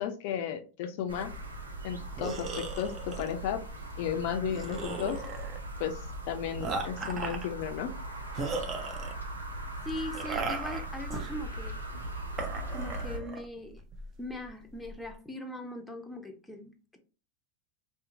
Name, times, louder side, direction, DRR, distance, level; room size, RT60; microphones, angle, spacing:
voice 1, 0.0-1.3 1.8-3.6 4.0-5.2 5.8-6.0 6.3-7.9, left 8 dB, 55° left, 0.3 m, -33 dB
sound 1, 1.1-13.2, right 1 dB, 90° right, 0.5 m, -40 dB
sound 2, 2.2-15.1, right 3 dB, 35° right, 0.6 m, -39 dB
voice 2, 9.8-11.8 12.7-13.8 14.2-17.0, left 1 dB, 5° left, 0.6 m, -40 dB
2.7 x 2.1 x 2.6 m
hypercardioid pair, 90°, 0 cm